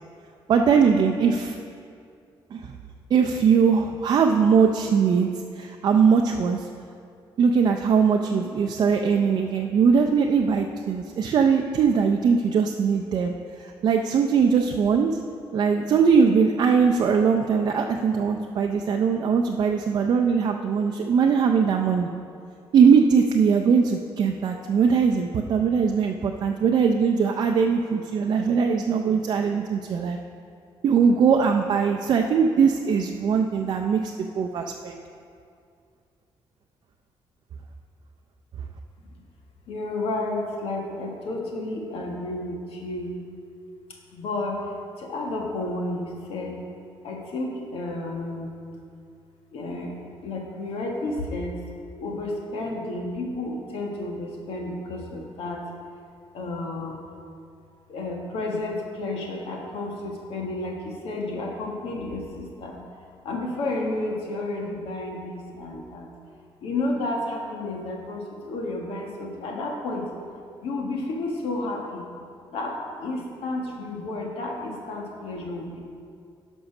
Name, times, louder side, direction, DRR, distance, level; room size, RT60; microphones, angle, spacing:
voice 1, 0.5-1.6 2.5-2.7 3.1-5.3 5.6-6.7 7.4-13.3 13.6-15.2 15.5-22.1 22.7-30.2 30.8-35.0, right 6 dB, 45° right, 3 dB, 0.4 m, -21 dB
voice 2, 39.7-43.1 44.1-44.6 45.0-46.6 47.0-48.5 49.5-49.9 50.2-51.6 52.0-55.6 56.3-57.0 57.9-62.8 63.2-66.1 66.6-70.0 70.6-72.0 72.5-75.8, left 2 dB, 90° left, 0 dB, 1.7 m, -31 dB
11.5 x 5.4 x 5.9 m, 2.4 s
cardioid pair, 175°, 10 cm